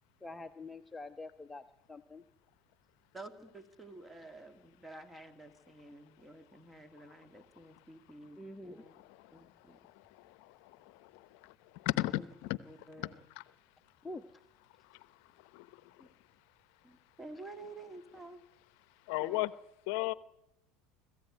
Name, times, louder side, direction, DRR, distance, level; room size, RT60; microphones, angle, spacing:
voice 1, 0.2-1.6 1.9-2.2 8.4-8.8 14.0-14.2, left 2 dB, 15° left, 8 dB, 1.1 m, -45 dB
voice 2, 3.1-8.9 9.3-9.8 12.2-12.3 12.6-13.2 16.0-16.1 16.8-18.4 19.2-19.4, right 2 dB, 15° right, 9 dB, 2.9 m, -51 dB
voice 3, 11.9-12.6 13.0-13.1 19.1-19.5 19.9-20.1, left 18 dB, 70° left, 17 dB, 0.8 m, -32 dB
25.5 x 15.0 x 9.3 m, 0.83 s
hypercardioid pair, 90°, 0 cm